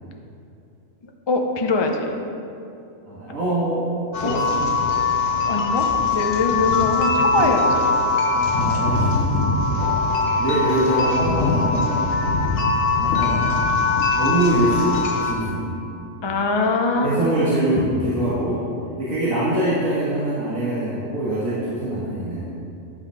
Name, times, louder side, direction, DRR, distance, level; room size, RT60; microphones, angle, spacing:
voice 1, 1.3-2.2 4.2-4.4 5.3-8.0 16.2-17.1, left 3 dB, 30° left, 2 dB, 0.5 m, -23 dB
voice 2, 3.1-3.9 4.2-4.7 7.3-7.5 8.3-9.4 9.8-9.9 10.4-12.0 13.0-13.5 14.2-15.7 16.3-16.4 17.0-18.6 19.0-22.6, right 1 dB, 85° right, -9 dB, 2.0 m, -24 dB
sound 1, 4.1-15.3, left 3 dB, 70° left, 1.2 m, -21 dB
9.6 x 5.8 x 4.6 m, 2.6 s
omnidirectional pair, 1.4 m